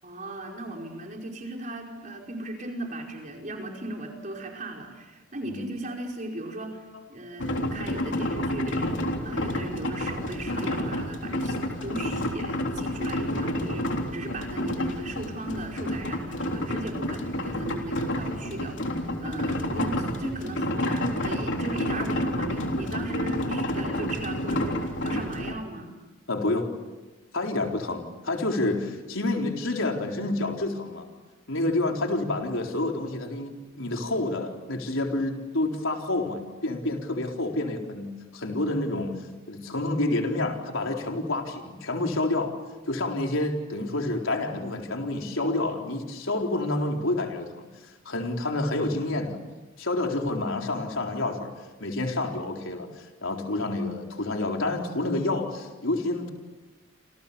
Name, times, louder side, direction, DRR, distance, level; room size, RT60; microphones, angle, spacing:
voice 1, 0.0-11.6 11.8-18.9 19.2-25.9, right 1 dB, 40° right, 1 dB, 5.0 m, -37 dB
sound 1, 7.4-25.5, left 1 dB, 65° left, 3.5 m, -29 dB
voice 2, 26.3-26.7 27.3-31.1 31.5-42.5 42.9-49.4 49.8-51.5 51.8-56.3, left 2 dB, 80° left, 2 dB, 4.1 m, -28 dB
28.5 x 28.0 x 7.1 m, 1.2 s
head